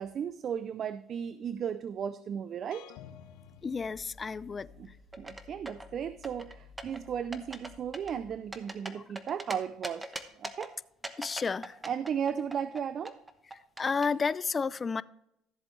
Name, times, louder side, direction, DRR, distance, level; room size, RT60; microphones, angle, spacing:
voice 1, 0.0-2.9 4.8-4.9 5.2-10.1 10.4-10.7 11.8-13.2, right 8 dB, 45° right, 14 dB, 0.4 m, -35 dB
sound 1, 2.7-4.7, left 9 dB, 80° left, 0.6 m, -52 dB
sound 2, 3.3-8.8, left 6 dB, 5° left, 3.7 m, -56 dB
voice 2, 3.6-4.7 11.2-11.8 13.8-15.0, left 5 dB, 30° left, 19 dB, 0.4 m, -31 dB
sound 3, 5.1-5.9 6.2-7.0 7.3-7.7 7.9-9.5 9.8-10.7 11.0-12.8 13.0-14.1, right 2 dB, 15° right, 1.0 m, -40 dB
14.0 x 7.5 x 3.3 m, 0.79 s
supercardioid pair, 100°, 0 cm